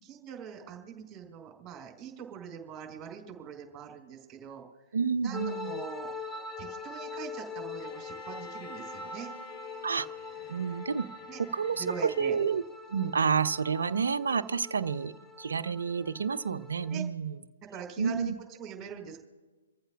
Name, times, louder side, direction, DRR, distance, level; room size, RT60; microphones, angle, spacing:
voice 1, 0.0-4.6 5.2-6.1 6.6-9.3 11.3-11.4 11.8-12.3 16.9-17.0 17.7-19.2, right 7 dB, 15° right, 1 dB, 4.3 m, -43 dB
voice 2, 4.9-5.7 9.8-10.1 10.5-11.1 11.4-12.6 12.9-17.4 18.0-18.3, right 6 dB, 60° right, 9 dB, 0.7 m, -29 dB
sound 1, 5.3-17.0, left 4 dB, 10° left, 0.8 m, -43 dB
Bowed string instrument, 7.8-12.5, left 7 dB, 35° left, 1.1 m, -51 dB
28.5 x 14.5 x 2.5 m, 1.3 s
figure-of-eight pair, 125°, 0 cm